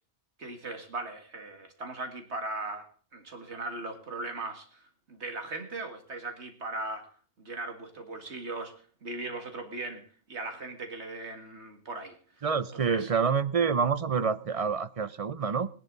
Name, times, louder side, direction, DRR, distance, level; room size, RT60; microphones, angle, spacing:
voice 1, 0.4-12.5 12.7-13.1, right 2 dB, 70° right, 2.2 m, -39 dB
voice 2, 12.4-15.7, right 6 dB, 40° right, 0.6 m, -27 dB
19.5 x 11.0 x 3.9 m
omnidirectional pair, 1.2 m